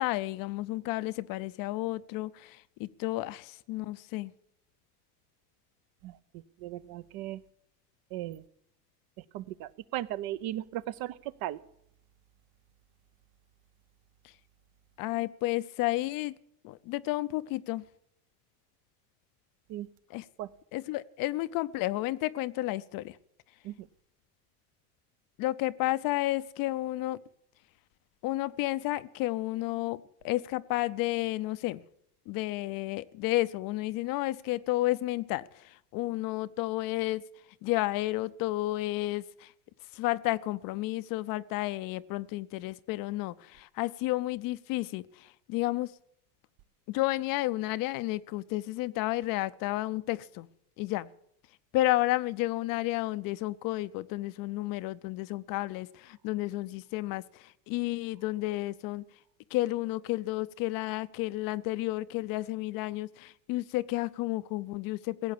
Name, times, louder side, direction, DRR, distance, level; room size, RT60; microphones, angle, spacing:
voice 1, 0.0-4.3 14.2-14.3 15.0-16.3 16.6-17.9 20.1-20.3 20.7-23.2 25.4-27.2 28.2-31.8 32.3-37.2 37.6-39.5 39.9-45.9 46.9-50.5 50.8-51.1 51.7-59.0 59.5-65.3, left 17 dB, 45° left, 0.6 m, -31 dB
voice 2, 6.6-7.4 8.1-8.4 9.3-11.6 19.7-19.9 20.4-20.5 23.6-23.9, right 14 dB, 50° right, 0.7 m, -37 dB
16.5 x 8.3 x 8.6 m
supercardioid pair, 105°, 47 cm